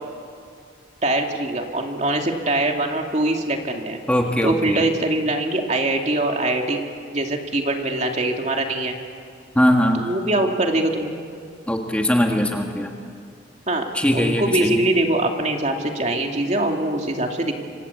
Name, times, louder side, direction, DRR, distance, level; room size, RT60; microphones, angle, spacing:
voice 1, 1.0-4.0 4.4-6.8 7.1-8.9 9.9-11.2 13.7-13.8 14.1-17.6, right 2 dB, 35° right, 3 dB, 2.5 m, -23 dB
voice 2, 4.1-4.9 9.5-10.0 11.7-12.9 13.9-14.8, equal, 5° left, 2 dB, 1.4 m, -20 dB
26.5 x 25.5 x 8.3 m, 2.3 s
head